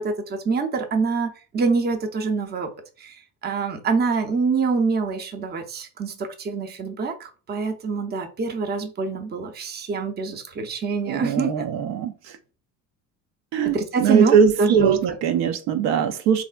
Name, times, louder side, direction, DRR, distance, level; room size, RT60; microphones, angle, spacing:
voice 1, 0.0-2.7 3.0-3.2 3.4-11.7 13.6-15.0, right 4 dB, 25° right, 0.5 m, -25 dB
voice 2, 11.1-12.1 13.5-16.4, right 7 dB, 70° right, 0.5 m, -21 dB
3.3 x 2.5 x 2.2 m
supercardioid pair, 85°, 40 cm